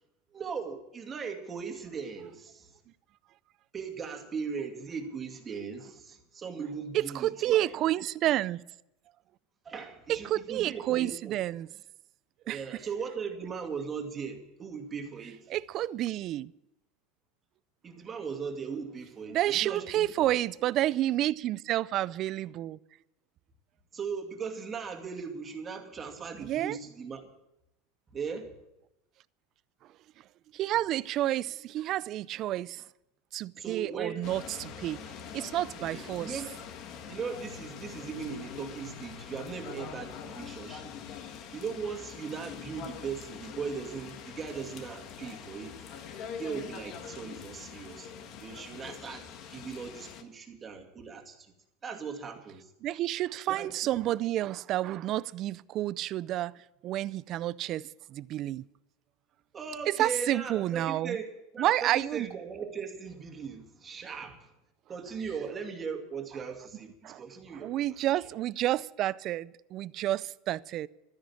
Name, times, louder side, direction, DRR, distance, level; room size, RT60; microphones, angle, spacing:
voice 1, 0.3-2.7 3.7-7.8 9.6-11.4 12.4-15.5 17.8-20.3 23.9-27.2 28.1-28.5 33.6-34.3 35.9-36.5 37.1-40.9 41.5-45.8 46.4-48.1 48.4-51.5 51.8-52.7 53.5-54.0 59.5-64.5 64.9-68.2, right 6 dB, 25° right, 2.4 m, -38 dB
voice 2, 6.9-8.6 10.1-11.7 12.5-12.6 15.5-16.5 19.3-22.8 26.4-26.8 30.5-32.8 33.3-35.0 35.3-36.4 52.8-56.5 56.8-58.6 60.0-61.2 61.6-62.3 67.0-67.2 67.6-70.9, right 14 dB, 45° right, 0.4 m, -30 dB
sound 1, 34.2-50.2, left 7 dB, 50° left, 1.7 m, -44 dB
13.0 x 10.5 x 8.7 m
supercardioid pair, 130°, 0 cm